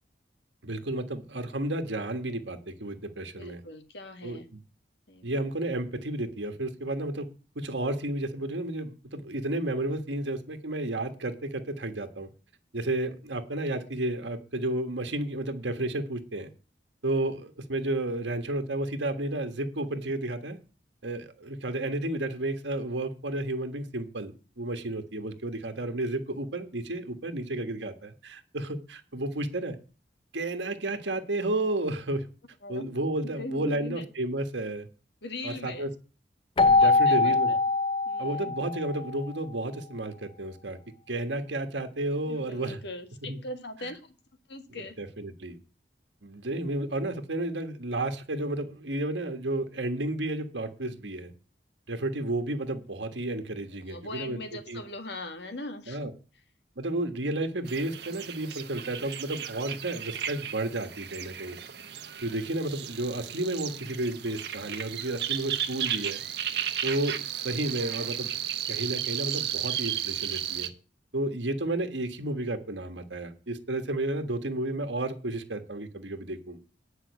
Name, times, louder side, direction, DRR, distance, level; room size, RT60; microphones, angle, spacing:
voice 1, 0.6-3.6 4.2-4.6 5.2-7.3 7.5-12.3 12.7-16.5 17.0-20.6 21.0-29.8 30.3-32.3 32.7-34.9 35.4-35.9 36.6-37.5 38.2-40.8 41.1-42.8 43.3-43.4 44.7-45.6 46.2-51.3 51.9-54.4 54.7-54.8 55.9-56.1 56.8-61.6 62.2-66.2 66.8-68.3 68.7-70.7 71.1-76.6, right 1 dB, 80° right, 1.5 m, -32 dB
voice 2, 3.4-4.5 5.1-5.3 32.6-32.9 33.2-34.1 35.2-35.9 36.7-37.6 38.1-38.5 42.3-44.0 44.5-45.0 53.8-56.2, left 2 dB, 70° left, 1.7 m, -40 dB
Keyboard (musical), 36.6-39.2, left 3 dB, 30° left, 0.5 m, -23 dB
sound 1, 57.7-70.7, right 10 dB, 65° right, 1.2 m, -34 dB
10.0 x 5.6 x 8.2 m
head